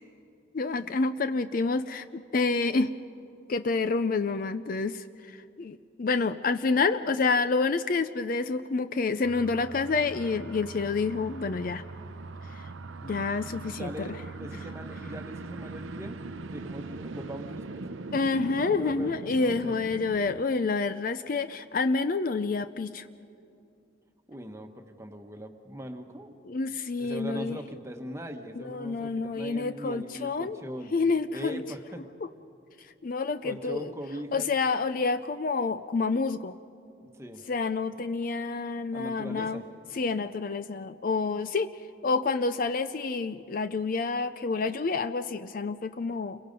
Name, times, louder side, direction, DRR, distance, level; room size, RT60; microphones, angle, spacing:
voice 1, 0.5-2.9 3.5-5.0 5.6-11.8 13.0-13.9 18.1-23.1 26.4-27.6 28.6-30.6 30.9-31.6 33.0-33.9 34.3-36.5 37.5-39.6 39.9-41.7 42.0-46.4, left 4 dB, 45° left, 12 dB, 0.4 m, -28 dB
sound 1, 9.2-20.5, right 3 dB, 85° right, 0.7 m, -41 dB
voice 2, 13.8-16.2 16.4-17.8 18.5-19.7 24.3-26.3 27.0-30.9 31.3-32.0 33.4-34.5 37.1-37.4 38.9-39.6, equal, 15° right, 5 dB, 1.2 m, -40 dB
29.5 x 22.5 x 5.4 m, 2.6 s
head